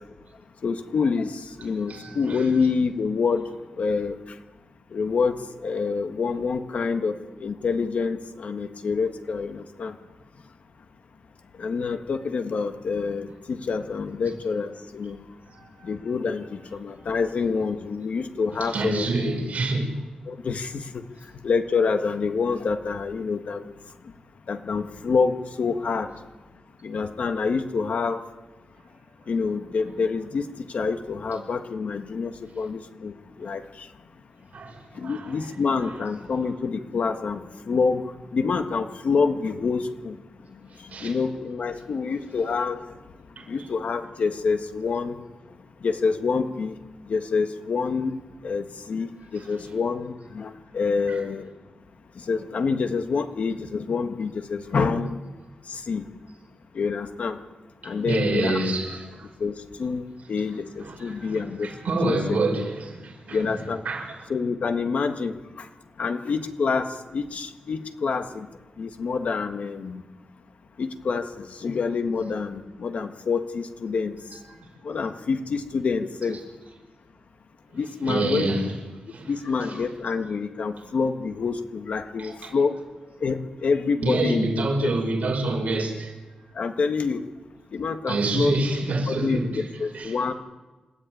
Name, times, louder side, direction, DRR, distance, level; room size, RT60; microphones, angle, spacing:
voice 1, 0.6-3.5 3.8-4.1 4.9-5.3 5.6-10.0 11.6-15.2 15.8-19.1 20.3-21.0 21.4-23.7 24.5-26.1 26.8-28.2 29.3-33.9 34.9-38.0 38.3-40.2 40.8-42.8 43.5-45.2 45.8-46.7 47.0-51.5 52.1-55.2 55.7-56.1 56.7-57.4 57.8-58.6 59.4-61.7 62.0-62.2 63.3-63.8 64.3-65.7 66.0-68.5 68.8-70.0 70.8-74.2 74.8-76.4 77.7-78.5 79.3-82.8 83.2-84.5 84.8-84.9 86.5-87.2 87.7-88.6 89.1-90.3, left 5 dB, 65° left, 1.6 m, -27 dB
voice 2, 1.9-2.4 18.6-19.9 34.5-35.3 40.9-41.1 43.4-43.5 51.1-51.2 57.8-59.3 60.9-63.5 63.9-64.1 78.1-78.7 79.1-79.3 82.2-82.5 84.0-86.1 88.1-89.7 89.9-90.1, right 2 dB, 70° right, 5.7 m, -27 dB
28.5 x 13.5 x 9.3 m
wide cardioid pair, 140°, 3 cm